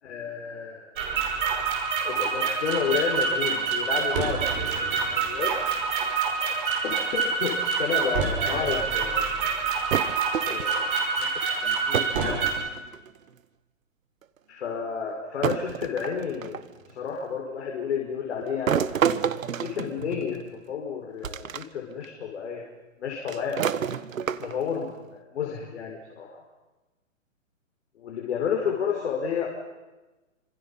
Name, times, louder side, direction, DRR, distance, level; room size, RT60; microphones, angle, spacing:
voice 1, 0.0-0.9 2.0-5.5 6.8-9.5 10.5-10.8 11.2-12.4 14.5-18.8 19.6-22.6 23.0-23.8 24.4-26.4 28.0-29.5, left 7 dB, 55° left, 0 dB, 4.9 m, -31 dB
sound 1, 1.0-12.5, right 5 dB, 40° right, 5.5 m, -26 dB
sound 2, 9.9-10.9 11.9-12.3 12.6-13.2 14.2-14.3 15.4-16.7 18.7-20.5 21.2-21.6 22.0-22.1 23.3-24.7, right 8 dB, 75° right, 1.4 m, -29 dB
29.0 x 26.5 x 5.6 m, 1.1 s
hypercardioid pair, 165°, 40 cm